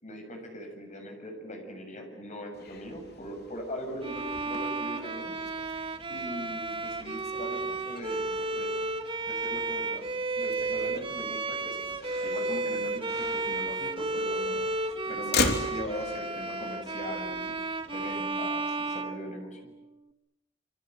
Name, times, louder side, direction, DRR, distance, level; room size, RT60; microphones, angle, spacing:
voice 1, 0.0-5.4 6.1-8.7 9.2-10.1 10.4-14.6 15.1-17.5 17.9-19.7, equal, 40° left, 4 dB, 7.1 m, -40 dB
Motor vehicle (road), 2.5-18.4, left 3 dB, 55° left, 3.2 m, -39 dB
Bowed string instrument, 4.0-19.9, right 3 dB, 25° right, 1.5 m, -33 dB
28.5 x 26.0 x 7.9 m, 0.89 s
head